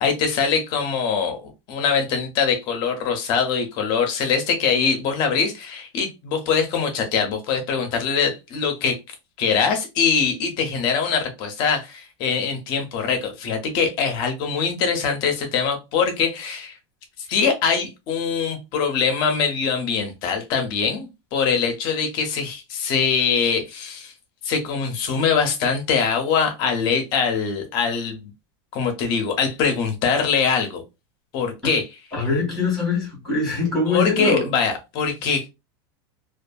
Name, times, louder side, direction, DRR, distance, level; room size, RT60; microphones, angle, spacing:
voice 1, 0.0-9.0 9.4-16.8 17.2-24.1 24.4-28.3 28.7-30.8 31.3-31.9 33.9-35.5, left 6 dB, 35° left, 0.6 m, -23 dB
voice 2, 32.1-34.5, left 3 dB, ahead, 1.3 m, -23 dB
2.6 x 2.4 x 2.2 m
supercardioid pair, 175°, 14 cm